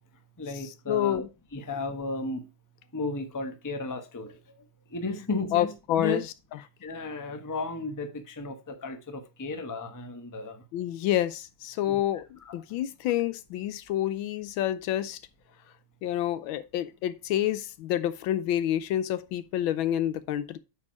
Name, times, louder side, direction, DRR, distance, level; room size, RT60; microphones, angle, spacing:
voice 1, 0.4-1.2 1.5-2.5 2.9-4.4 4.9-5.7 6.0-6.2 6.8-10.6 11.8-12.0 12.4-12.5, left 3 dB, 20° left, 0.5 m, -34 dB
voice 2, 0.9-1.3 5.5-6.2 10.7-15.2 16.0-20.6, left 12 dB, 85° left, 1.5 m, -28 dB
8.5 x 4.7 x 4.6 m
omnidirectional pair, 2.1 m